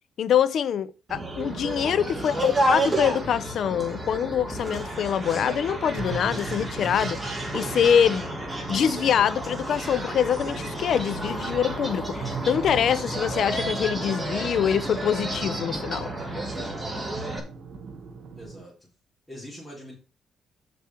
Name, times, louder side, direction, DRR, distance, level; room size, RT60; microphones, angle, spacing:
voice 1, 0.2-8.3 8.7-16.1, left 8 dB, 65° left, 0.7 m, -24 dB
sound 1, 1.1-17.4, right 2 dB, 10° right, 3.3 m, -31 dB
voice 2, 2.1-2.5 18.4-18.9 19.3-20.0, equal, 15° left, 4.3 m, -42 dB
sound 2, 3.1-18.6, right 4 dB, 60° right, 2.6 m, -41 dB
7.0 x 6.1 x 6.0 m
cardioid pair, 90°, 0 cm